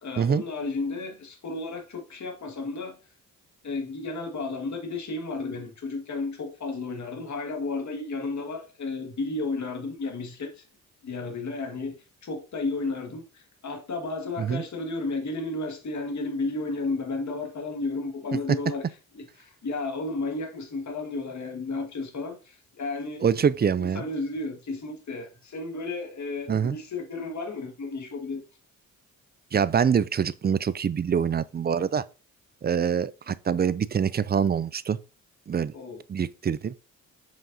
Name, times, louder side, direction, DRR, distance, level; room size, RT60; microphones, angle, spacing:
voice 1, 0.0-3.0 3.6-10.6 11.0-12.0 12.2-18.9 19.1-23.5 23.8-28.4 35.7-36.0, left 3 dB, 55° left, 1.9 m, -33 dB
voice 2, 23.2-24.0 26.5-26.8 29.5-32.0 32.6-35.0 35.5-35.7 36.1-36.9, right 7 dB, 30° right, 0.4 m, -25 dB
7.0 x 6.2 x 2.7 m
cardioid pair, 80°, 35 cm